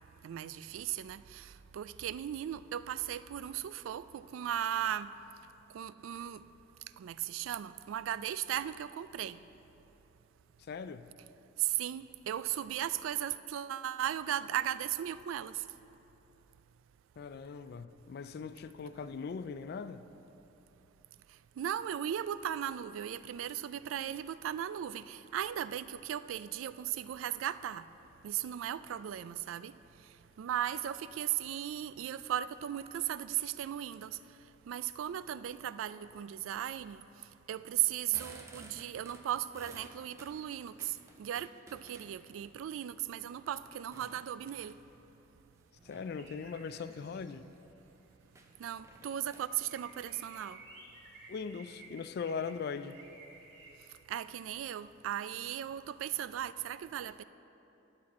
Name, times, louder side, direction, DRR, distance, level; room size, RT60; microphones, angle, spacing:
voice 1, 0.2-5.1 5.7-6.4 7.0-9.4 11.6-15.6 21.3-27.9 28.2-34.2 34.7-44.8 48.6-50.6 54.1-57.2, right 11 dB, 90° right, 15 dB, 0.3 m, -37 dB
voice 2, 10.7-11.1 17.2-20.0 45.8-47.5 51.3-53.0, left 5 dB, 55° left, 13 dB, 0.3 m, -40 dB
sound 1, 38.1-42.4 43.0-45.0 45.8-46.2 46.7-47.1 47.4-47.5 47.8-47.9 48.3-50.3, right 2 dB, 15° right, 0.6 m, -55 dB
sound 2, 46.2-47.7 48.0-48.1 48.5-48.7 49.0-53.7, right 2 dB, 65° right, 2.2 m, -55 dB
12.0 x 7.5 x 4.2 m, 3.0 s
head